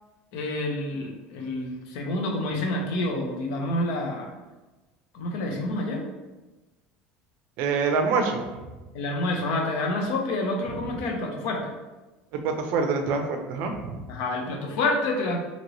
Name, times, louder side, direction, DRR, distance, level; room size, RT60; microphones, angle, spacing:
voice 1, 0.3-4.3 5.1-6.0 8.9-11.7 14.1-15.4, left 2 dB, 70° left, 1 dB, 0.6 m, -28 dB
voice 2, 7.6-8.5 12.3-14.0, right 4 dB, 60° right, 4 dB, 0.4 m, -26 dB
2.9 x 2.9 x 2.6 m, 1.1 s
cardioid pair, 150°, 4 cm